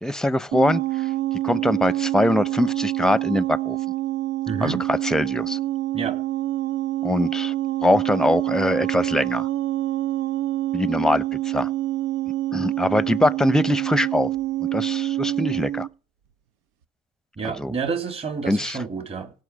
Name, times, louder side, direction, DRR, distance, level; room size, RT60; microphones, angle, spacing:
voice 1, 0.0-1.1 1.4-3.8 4.6-5.6 7.0-7.5 7.8-9.5 10.7-11.7 12.5-14.3 14.7-15.9 17.4-17.7 18.5-18.8, left 1 dB, 5° left, 0.8 m, -22 dB
sound 1, 0.5-15.9, right 15 dB, 85° right, 0.7 m, -26 dB
voice 2, 4.5-4.9 5.9-6.2 17.4-19.3, right 5 dB, 35° right, 3.5 m, -29 dB
17.0 x 6.0 x 9.7 m
supercardioid pair, 85°, 19 cm